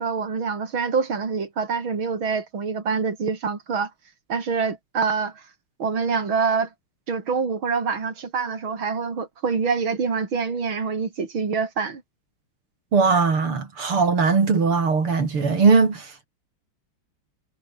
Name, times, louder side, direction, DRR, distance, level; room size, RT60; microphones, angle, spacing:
voice 1, 0.0-3.9 4.3-5.4 5.8-6.7 7.1-12.0, right 5 dB, 70° right, 4.3 m, -25 dB
voice 2, 12.9-16.3, right 5 dB, 85° right, 4.5 m, -20 dB
omnidirectional pair, 2.3 m